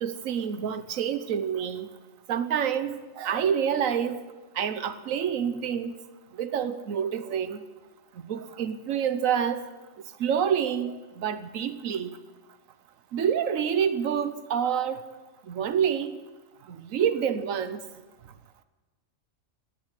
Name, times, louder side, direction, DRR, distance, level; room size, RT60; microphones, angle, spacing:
voice 1, 0.0-1.9 2.3-4.2 4.5-5.9 6.3-7.6 8.2-9.6 10.2-12.2 13.1-15.1 15.5-16.2 16.7-17.8, right 8 dB, 80° right, 10 dB, 1.3 m, -27 dB
18.0 x 9.6 x 8.4 m, 1.2 s
omnidirectional pair, 1.4 m